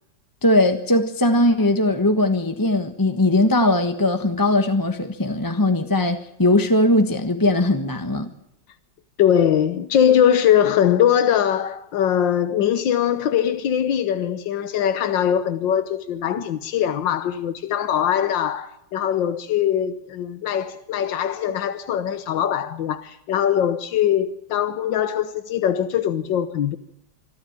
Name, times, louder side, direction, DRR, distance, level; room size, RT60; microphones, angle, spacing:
voice 1, 0.4-8.3, left 1 dB, 15° left, 1.1 m, -19 dB
voice 2, 9.2-26.8, left 9 dB, 90° left, 1.7 m, -21 dB
25.5 x 13.0 x 8.8 m
omnidirectional pair, 1.9 m